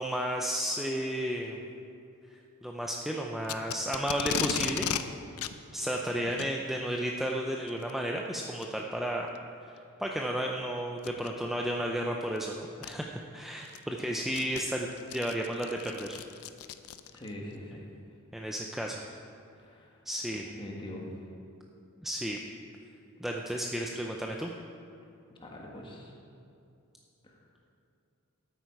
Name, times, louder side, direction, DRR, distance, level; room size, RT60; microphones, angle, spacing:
voice 1, 0.0-1.6 2.3-4.9 5.7-9.3 9.6-9.7 10.0-16.2 18.3-19.0 20.1-20.4 22.0-22.4 23.2-24.5, equal, ahead, 0 dB, 0.5 m, -33 dB
Packing tape duct tape, 3.4-5.0 5.4-5.5 6.3-6.5 7.7-7.9 8.6-8.7 9.3-9.4 11.0-11.3 12.4-12.5 12.8-12.9 13.4-17.3, left 8 dB, 85° left, 0.5 m, -35 dB
voice 2, 17.1-17.9 19.6-19.9 20.6-21.1 25.3-26.1 27.2-27.3, left 1 dB, 25° left, -1 dB, 1.6 m, -43 dB
13.0 x 8.6 x 4.7 m, 2.6 s
head